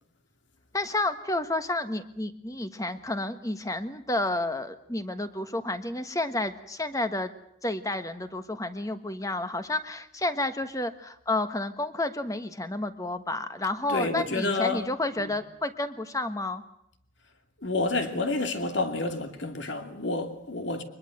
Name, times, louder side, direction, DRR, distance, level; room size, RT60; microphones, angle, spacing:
voice 1, 0.7-7.3 7.6-16.6, left 2 dB, 15° left, 1.4 m, -30 dB
voice 2, 13.9-14.8 15.2-15.3 17.6-20.8, left 3 dB, 60° left, 2.7 m, -29 dB
24.0 x 21.0 x 7.9 m
head